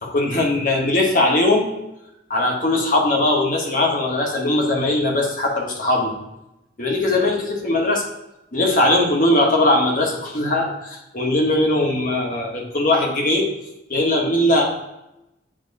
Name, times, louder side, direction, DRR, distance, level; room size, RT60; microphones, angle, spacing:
voice 1, 0.0-1.7 2.3-6.1 6.8-8.0 8.5-13.5 13.9-14.6, left 1 dB, 50° left, 0 dB, 1.3 m, -20 dB
8.7 x 3.0 x 4.1 m, 0.89 s
head